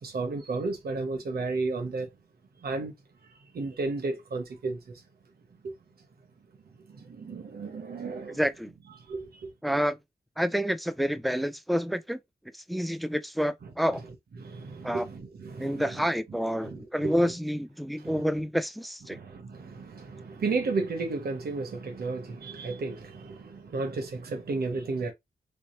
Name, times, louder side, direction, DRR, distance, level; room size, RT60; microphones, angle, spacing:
voice 1, 0.0-2.1 2.6-2.9 3.5-4.8 5.6-5.7 6.9-8.4 9.1-9.5 14.4-16.0 16.6-17.3 18.0-18.2 19.1-25.1, right 3 dB, 60° right, 0.9 m, -33 dB
voice 2, 8.3-8.7 9.6-10.0 10.4-12.2 12.7-14.0 14.8-15.1 15.6-19.2, equal, ahead, 0.4 m, -28 dB
3.4 x 2.0 x 4.2 m
cardioid pair, 80°, 18 cm